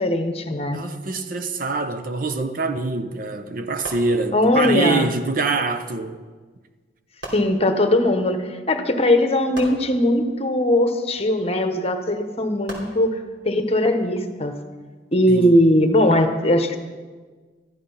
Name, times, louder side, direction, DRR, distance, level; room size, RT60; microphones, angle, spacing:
voice 1, 0.0-0.8 4.3-5.1 7.3-13.2 13.4-14.6 15.1-16.8, left 1 dB, 35° left, 1.1 m, -19 dB
voice 2, 0.7-6.2 15.3-15.6, right 3 dB, 50° right, 0.8 m, -25 dB
sound 1, 3.8-4.8 6.2-6.3 7.2-8.2 9.5-10.8 12.7-13.7 14.4-14.7, right 1 dB, 70° right, 3.1 m, -40 dB
14.5 x 11.0 x 5.6 m
head